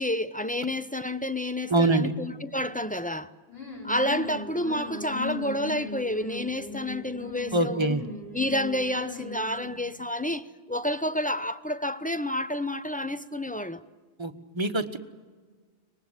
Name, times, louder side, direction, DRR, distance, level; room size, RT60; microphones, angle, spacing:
voice 1, 0.0-3.3 3.8-8.0 8.3-13.8, left 1 dB, 10° left, 0.5 m, -29 dB
voice 2, 1.7-2.1 7.5-8.0 14.2-15.0, right 2 dB, 30° right, 1.2 m, -24 dB
sound 1, 3.5-9.9, left 3 dB, 75° left, 4.7 m, -38 dB
24.0 x 19.5 x 8.2 m
omnidirectional pair, 1.0 m